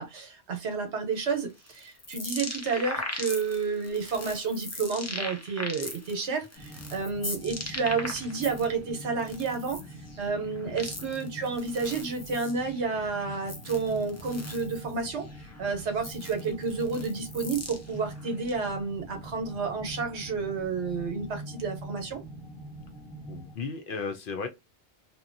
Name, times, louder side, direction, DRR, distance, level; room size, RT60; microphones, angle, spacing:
voice 1, 0.0-9.8 10.2-15.2 15.6-22.2, right 4 dB, 80° right, 1.1 m, -30 dB
sound 1, 1.2-8.7 9.1-18.5, left 2 dB, 25° left, 0.3 m, -39 dB
sound 2, 6.5-23.6, right 1 dB, 10° left, 1.0 m, -44 dB
voice 2, 10.6-11.2 23.3-24.5, left 4 dB, 60° left, 0.6 m, -36 dB
2.8 x 2.2 x 2.5 m
omnidirectional pair, 1.2 m